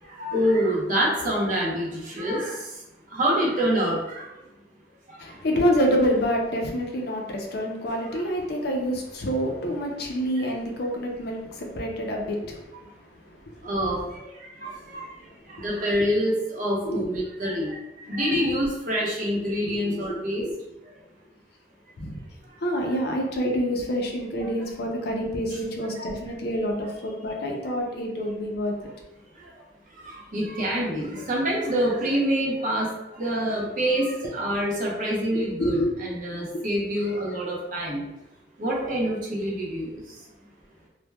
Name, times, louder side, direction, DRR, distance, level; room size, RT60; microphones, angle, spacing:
voice 1, 0.0-2.8 3.1-4.3 5.1-5.2 8.0-8.2 10.3-10.4 13.6-15.1 15.5-20.4 20.8-20.9 22.8-23.0 24.4-24.5 25.5-25.6 25.9-26.1 29.3-29.6 29.9-38.1 38.6-40.2, equal, 50° right, -4 dB, 0.7 m, -27 dB
voice 2, 5.2-12.6 16.8-17.1 18.5-18.6 19.7-20.0 20.4-20.6 22.0-22.2 22.6-28.7 35.3-36.0 36.3-36.6, equal, 65° left, 1 dB, 0.5 m, -27 dB
3.2 x 2.1 x 2.2 m, 0.95 s
head